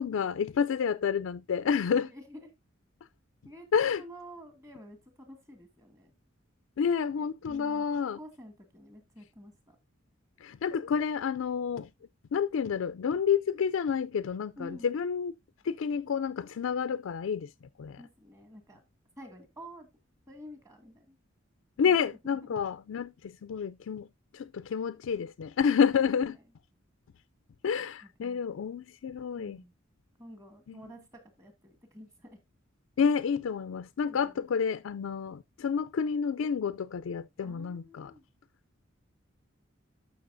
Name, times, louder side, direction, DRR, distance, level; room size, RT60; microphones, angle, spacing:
voice 1, 0.0-2.1 3.7-4.0 6.8-8.2 10.4-11.9 12.3-15.3 15.6-17.5 17.8-18.0 21.8-24.1 24.3-26.4 27.6-29.6 30.7-30.8 33.0-38.1, left 6 dB, 75° left, 0.4 m, -29 dB
voice 2, 1.6-2.4 3.5-3.7 4.0-6.1 7.5-9.8 14.6-14.9 18.0-18.8 19.2-19.9 20.3-21.2 26.0-26.1 28.2-28.4 29.4-29.7 30.2-31.0 31.4-32.4 34.1-34.4 37.4-38.2, equal, 15° right, 2.2 m, -49 dB
12.5 x 6.2 x 2.6 m
head